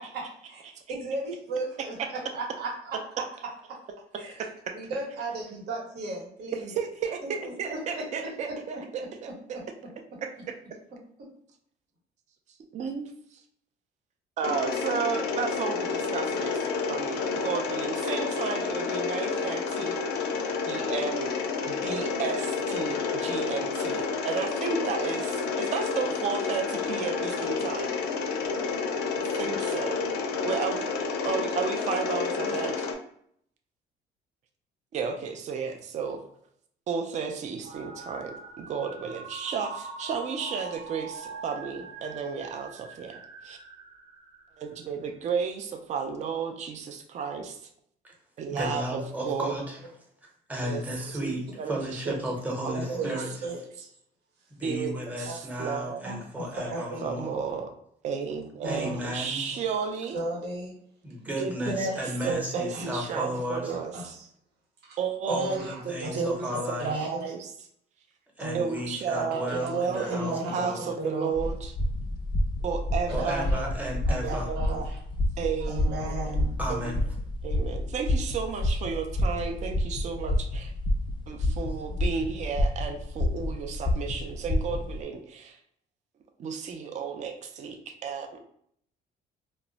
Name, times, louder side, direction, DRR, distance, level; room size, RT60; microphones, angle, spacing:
voice 1, 0.5-3.2 4.2-4.5 4.7-6.7 7.4-8.5 49.2-49.3 52.1-52.3 52.7-53.9 55.2-55.4 55.8-57.4 58.6-59.0 59.4-59.6 60.1-60.7 61.6-62.4 62.7-62.8 63.7-64.3 64.8-65.0 65.3-67.3 68.4-68.7 69.1-71.5 73.2-73.6 74.1-75.0 75.6-76.6, right 2 dB, 70° right, -2 dB, 1.0 m, -35 dB
voice 2, 4.4-4.7 6.7-7.2 7.6-9.3 12.7-13.1 14.4-20.0 20.2-20.3 20.6-21.3 21.6-27.9 29.2-30.0 30.4-31.0 31.2-32.9 34.9-36.2 36.9-43.6 44.6-47.6 48.4-49.6 50.6-50.8 51.1-52.2 52.6-53.2 54.6-56.1 57.0-57.7 58.0-60.2 61.4-61.9 62.2-64.1 65.0-67.5 68.5-71.7 72.6-73.5 74.2-74.9 75.4-76.4 76.7-77.0 77.4-80.7 81.3-85.6 86.4-88.4, right 6 dB, 45° right, 4 dB, 0.4 m, -33 dB
Mechanisms, 14.4-32.9, left 5 dB, 85° left, 0.4 m, -30 dB
sound 1, 37.6-44.9, right 4 dB, 85° right, 0.7 m, -43 dB
voice 3, 48.5-49.8 50.5-53.3 54.6-57.3 58.6-59.4 61.0-63.7 65.2-66.9 68.4-70.9 73.1-74.5 76.6-77.0, equal, 10° right, -1 dB, 0.8 m, -34 dB
sound 2, 71.3-85.0, left 1 dB, 30° left, 0.4 m, -29 dB
2.2 x 2.0 x 3.8 m, 0.67 s
cardioid pair, 110°, 17 cm